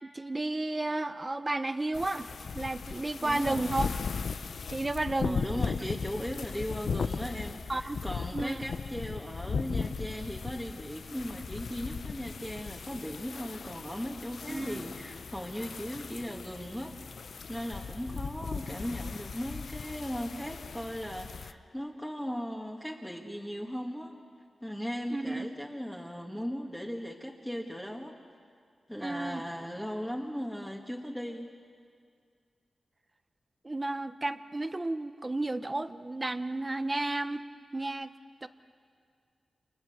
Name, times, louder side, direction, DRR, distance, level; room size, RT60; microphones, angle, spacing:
voice 1, 0.0-2.3 2.5-3.9 4.7-5.4 7.7-8.0 8.3-8.6 14.5-14.8 25.1-25.5 29.0-29.4 33.6-38.1 38.4-38.5, right 2 dB, 25° right, 11 dB, 1.0 m, -32 dB
sound 1, 1.9-21.5, left 5 dB, 70° left, 0.7 m, -37 dB
voice 2, 3.2-3.9 5.2-17.0 17.5-24.1 24.6-28.1 28.9-31.5, equal, 5° left, 0 dB, 2.0 m, -38 dB
29.5 x 29.5 x 6.8 m, 2.2 s
wide cardioid pair, 110°, 0 cm